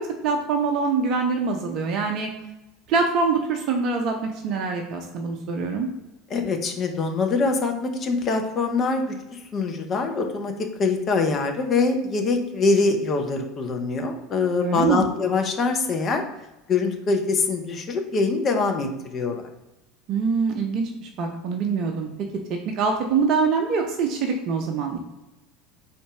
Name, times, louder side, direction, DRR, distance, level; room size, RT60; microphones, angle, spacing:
voice 1, 0.0-2.3 2.9-5.9 14.6-15.1 20.1-22.1 22.7-25.0, right 5 dB, 45° right, 2 dB, 0.6 m, -24 dB
voice 2, 6.3-10.5 10.8-16.2 16.7-19.4, left 4 dB, 35° left, 4 dB, 0.7 m, -24 dB
4.0 x 2.5 x 4.6 m, 0.99 s
figure-of-eight pair, 70°, 0 cm